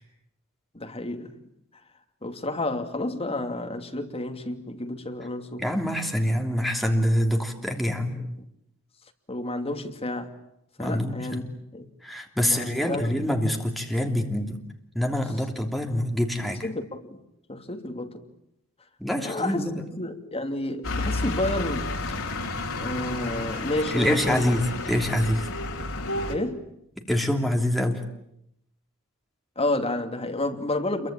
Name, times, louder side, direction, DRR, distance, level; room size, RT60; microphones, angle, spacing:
voice 1, 0.7-1.3 2.2-5.6 9.3-10.3 10.8-11.4 11.7-11.9 12.4-13.2 16.6-17.2 17.5-18.2 19.2-19.6 20.0-21.9 22.8-24.5 26.3-26.6 29.6-31.1, left 1 dB, 25° left, 2.7 m, -30 dB
voice 2, 5.6-8.2 10.8-11.4 12.0-14.6 14.9-16.7 19.0-19.9 23.9-25.5 27.0-28.0, equal, ahead, 3.0 m, -25 dB
sound 1, 20.8-26.4, left 2 dB, 65° left, 3.3 m, -31 dB
28.0 x 23.5 x 9.0 m
head